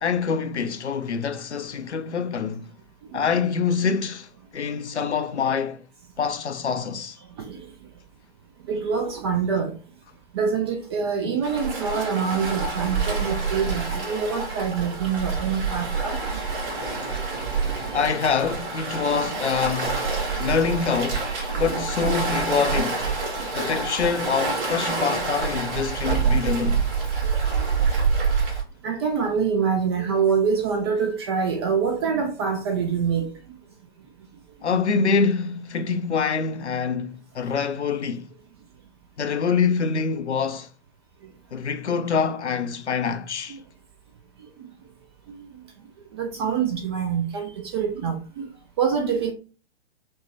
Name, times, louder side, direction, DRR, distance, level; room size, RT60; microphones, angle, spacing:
voice 1, 0.0-2.7 3.1-5.8 6.2-7.2 11.2-11.4 17.9-20.0 20.4-21.3 21.6-23.0 23.5-26.8 34.6-38.3 39.2-40.7 41.5-43.6, left 5 dB, 90° left, 0.6 m, -25 dB
voice 2, 3.1-3.4 7.3-7.7 8.7-9.7 10.3-16.2 21.5-21.6 23.6-23.7 27.2-27.5 28.8-33.3 43.5-43.6 45.3-45.5 46.1-48.5 48.8-49.3, right 6 dB, 25° right, 0.4 m, -25 dB
Waves surf, 11.4-28.6, right 4 dB, 55° right, 1.8 m, -26 dB
5.3 x 2.1 x 2.7 m
figure-of-eight pair, 120°, 33 cm